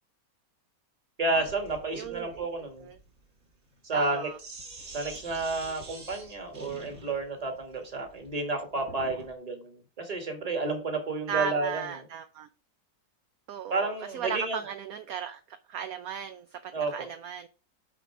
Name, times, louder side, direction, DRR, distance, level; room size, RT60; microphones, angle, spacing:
voice 1, 1.2-2.9 3.8-4.3 4.9-11.8 13.7-14.6 16.7-17.1, right 3 dB, 20° right, 1.5 m, -31 dB
Sink (filling or washing), 1.3-9.3, right 3 dB, 50° right, 2.2 m, -47 dB
voice 2, 1.9-2.5 2.8-3.0 3.9-4.4 11.3-12.5 13.5-17.5, right 8 dB, 70° right, 0.9 m, -36 dB
9.2 x 3.9 x 4.6 m
omnidirectional pair, 1.9 m